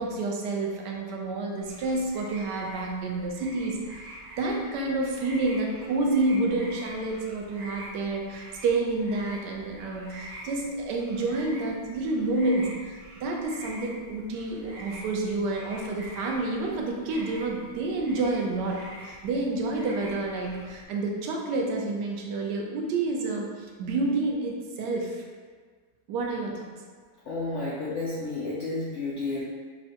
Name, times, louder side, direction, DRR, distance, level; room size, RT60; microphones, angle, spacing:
voice 1, 0.0-25.2 26.1-26.7, right 2 dB, 90° right, 0 dB, 1.2 m, -29 dB
sound 1, 1.6-20.8, right 1 dB, 60° right, 0.9 m, -46 dB
voice 2, 27.3-29.4, left 3 dB, 65° left, -7 dB, 0.7 m, -31 dB
5.5 x 2.1 x 2.8 m, 1.5 s
omnidirectional pair, 1.8 m